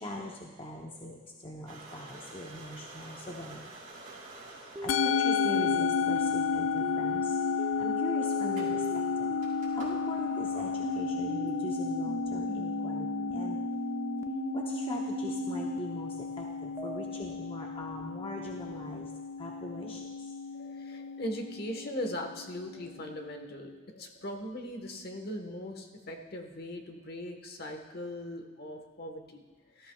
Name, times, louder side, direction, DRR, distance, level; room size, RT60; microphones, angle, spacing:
voice 1, 0.0-3.6 4.8-7.2 7.8-8.8 9.7-13.1 13.3-13.6 14.5-16.1 16.4-19.1 19.4-20.0, left 1 dB, 25° left, 0 dB, 0.8 m, -41 dB
sound 1, 1.7-5.1 5.5-5.6 6.0-11.5, right 2 dB, 45° right, 4.0 m, -50 dB
sound 2, 4.7-10.2 10.8-15.8 16.8-17.1, right 1 dB, 15° right, 0.3 m, -38 dB
Musical instrument, 4.9-23.4, left 6 dB, 80° left, 0.4 m, -33 dB
voice 2, 20.5-29.9, left 1 dB, 50° left, 4 dB, 1.3 m, -40 dB
17.5 x 13.5 x 2.3 m, 1.3 s
head